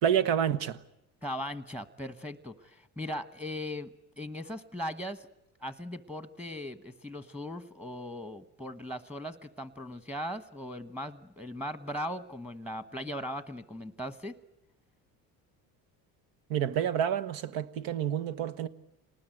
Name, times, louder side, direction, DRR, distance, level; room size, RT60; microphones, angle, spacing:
voice 1, 0.0-0.8 16.5-18.7, right 9 dB, 85° right, 1.4 m, -28 dB
voice 2, 1.2-5.3 5.6-14.3, equal, 5° right, 1.2 m, -39 dB
27.0 x 19.5 x 9.2 m
cardioid pair, 115°, 35 cm